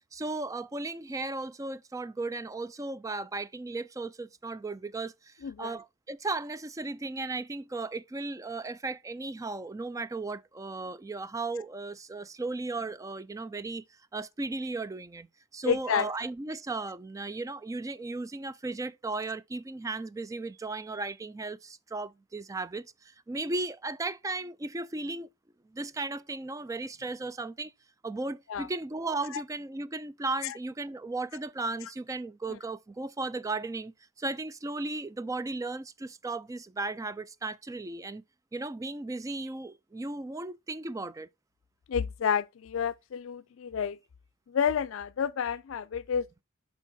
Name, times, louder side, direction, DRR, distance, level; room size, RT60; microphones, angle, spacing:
voice 1, 0.1-13.8 14.1-15.3 15.5-25.3 25.7-27.7 28.0-38.2 38.5-41.3, right 3 dB, 15° right, 0.3 m, -36 dB
voice 2, 5.4-5.8 15.6-16.1 28.5-28.7 29.3-29.4 30.4-30.5 32.5-32.6 41.9-44.0 44.5-46.4, left 7 dB, 75° left, 0.4 m, -30 dB
7.2 x 4.5 x 4.1 m
head